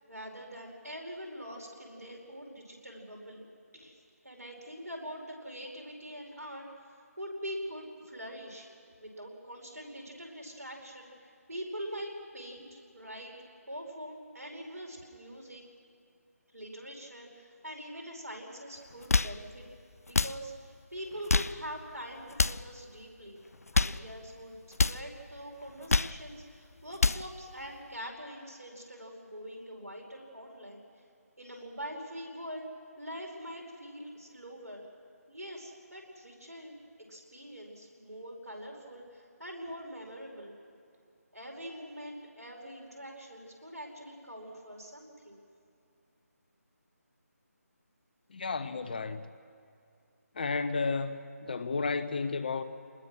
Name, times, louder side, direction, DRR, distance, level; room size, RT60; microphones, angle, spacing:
voice 1, 0.0-3.4 3.7-8.7 9.0-13.3 13.7-15.6 16.5-19.6 20.1-23.4 23.7-24.6 24.9-30.8 31.4-32.7 33.0-34.9 35.3-36.8 37.1-40.5 41.3-45.4, equal, 75° right, 5.2 m, -44 dB
sound 1, 18.9-19.4 20.1-20.4 21.1-21.6 22.3-22.7 23.5-24.0 24.7-25.0 25.7-26.2 26.8-27.3, left 3 dB, 65° left, 0.5 m, -27 dB
voice 2, 48.3-49.3 50.4-52.6, left 4 dB, 35° left, 0.7 m, -32 dB
25.5 x 20.5 x 6.3 m
figure-of-eight pair, 155°, 9 cm